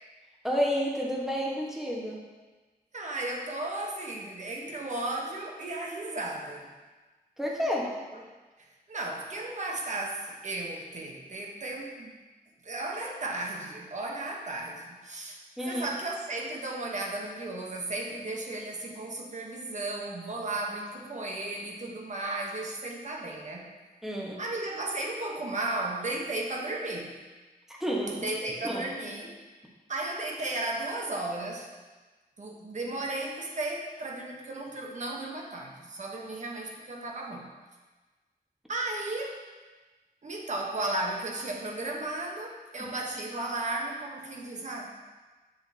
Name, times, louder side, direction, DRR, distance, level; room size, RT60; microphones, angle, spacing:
voice 1, 0.4-2.2 7.4-7.9 15.6-15.9 24.0-24.4 27.7-28.3 28.6-28.8 42.8-42.9, equal, ahead, -3 dB, 1.3 m, -30 dB
voice 2, 2.9-6.7 8.9-12.1 12.6-15.4 15.6-23.7 24.4-27.1 28.2-29.3 29.9-31.7 32.4-37.5 38.7-39.4 40.2-44.9, right 2 dB, 50° right, -1 dB, 1.1 m, -34 dB
8.0 x 6.6 x 2.8 m, 1.3 s
wide cardioid pair, 125°, 16 cm